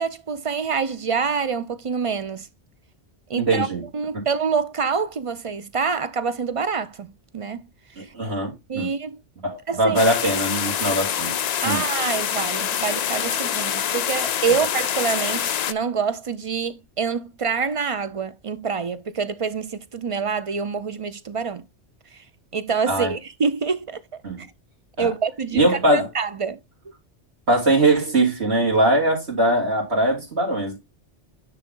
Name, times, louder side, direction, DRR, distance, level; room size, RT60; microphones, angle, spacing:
voice 1, 0.0-2.5 3.3-3.7 3.9-7.7 8.7-9.2 9.7-10.0 11.6-21.6 22.5-24.0 24.4-24.5 25.0-25.6 25.9-26.6, right 5 dB, 40° right, 0.5 m, -26 dB
voice 2, 3.4-3.8 8.1-8.9 9.4-11.3 11.6-11.8 14.5-14.6 22.9-23.1 24.2-24.4 25.0-25.1 25.5-26.1 27.5-30.8, right 1 dB, 65° right, 3.5 m, -21 dB
sound 1, 10.0-15.7, left 9 dB, 60° left, 0.4 m, -25 dB
10.0 x 3.7 x 3.8 m
omnidirectional pair, 1.2 m